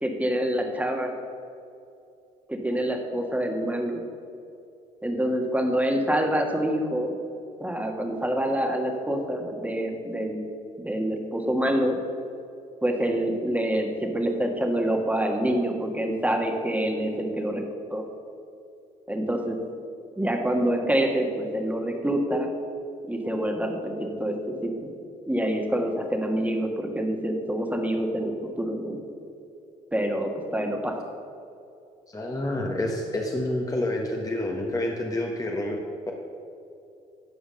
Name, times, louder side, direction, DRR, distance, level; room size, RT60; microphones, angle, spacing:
voice 1, 0.0-1.1 2.5-4.0 5.0-7.1 7.6-10.4 10.8-12.0 12.8-18.0 19.1-19.6 20.2-22.5 23.1-24.9 25.3-29.0 29.9-31.0, right 1 dB, 10° right, 2 dB, 1.7 m, -26 dB
voice 2, 32.1-35.8 36.1-36.2, left 1 dB, 20° left, 0 dB, 1.3 m, -28 dB
11.5 x 5.0 x 6.4 m, 2.6 s
supercardioid pair, 60°, 18 cm